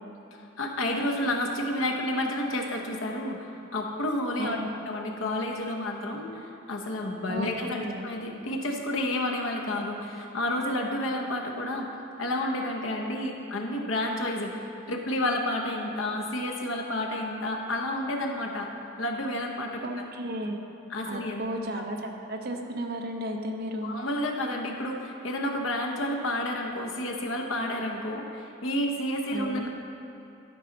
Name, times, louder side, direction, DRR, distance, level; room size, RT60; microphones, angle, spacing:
voice 1, 0.6-11.9 12.2-18.7 19.0-19.8 20.9-21.4 21.8-21.9 23.8-29.7, left 1 dB, 90° left, 1 dB, 1.0 m, -30 dB
voice 2, 4.4-4.7 7.3-8.1 19.8-20.6 21.1-23.9 29.3-29.6, equal, 50° right, 2 dB, 0.8 m, -34 dB
12.0 x 5.6 x 3.9 m, 2.8 s
head